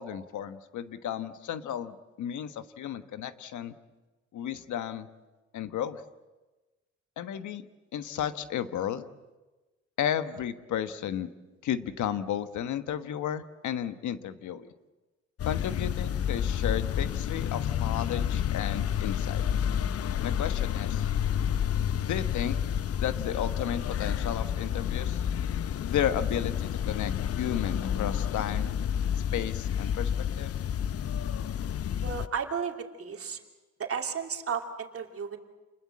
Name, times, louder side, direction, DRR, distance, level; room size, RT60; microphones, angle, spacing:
voice 1, 0.0-3.7 4.3-5.1 5.5-6.0 7.2-7.6 7.9-9.1 10.0-11.3 11.6-14.7 15.5-19.4 20.2-21.1 22.0-22.6 22.9-25.2 25.8-28.7 29.3-30.5, left 9 dB, 75° left, 11 dB, 1.3 m, -33 dB
sound 1, 15.4-32.3, left 9 dB, 50° left, 0.7 m, -30 dB
voice 2, 32.0-33.4 33.8-35.4, right 6 dB, 50° right, 4 dB, 2.9 m, -33 dB
29.0 x 20.5 x 7.6 m, 1.2 s
cardioid pair, 90°, 30 cm